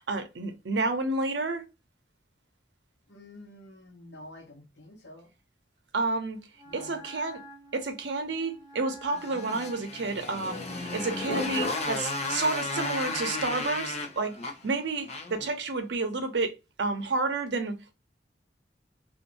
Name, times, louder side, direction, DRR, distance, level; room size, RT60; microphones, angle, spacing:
voice 1, 0.1-1.6 5.9-6.4 6.7-7.4 7.7-14.4 14.6-17.9, right 3 dB, 75° right, 0.7 m, -30 dB
voice 2, 3.1-5.3 6.6-7.0, left 1 dB, 75° left, 0.9 m, -48 dB
Wind instrument woodwind instrument, 6.5-13.8, right 1 dB, 25° right, 1.0 m, -49 dB
Motorcycle, 9.2-15.5, left 3 dB, 40° left, 0.6 m, -33 dB
2.6 x 2.5 x 2.8 m
head